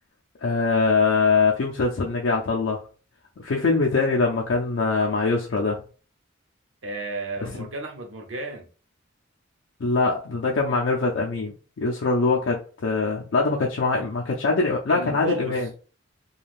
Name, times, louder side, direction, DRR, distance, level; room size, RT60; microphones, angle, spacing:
voice 1, 0.4-2.8 3.4-5.8 7.4-7.7 9.8-15.7, left 3 dB, 70° left, 0.5 m, -23 dB
voice 2, 6.8-8.7 14.9-15.6, right 1 dB, 75° right, 0.7 m, -32 dB
2.5 x 2.3 x 3.3 m
head